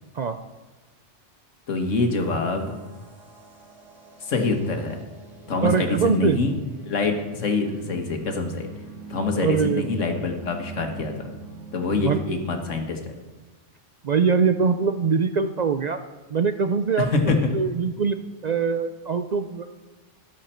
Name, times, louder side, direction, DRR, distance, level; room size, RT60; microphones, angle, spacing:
voice 1, 1.7-2.7 4.2-5.0 5.5-6.5 6.8-8.7 9.1-11.3 11.7-13.0 17.0-17.4, left 3 dB, 90° left, 4 dB, 1.8 m, -25 dB
sound 1, 2.2-12.3, right 5 dB, 85° right, 2.6 m, -44 dB
voice 2, 5.6-6.4 9.4-9.9 11.9-12.4 14.0-16.0 16.3-18.2 18.4-19.7, right 5 dB, 60° right, 9 dB, 0.4 m, -23 dB
13.0 x 10.5 x 4.4 m, 1.2 s
omnidirectional pair, 1.3 m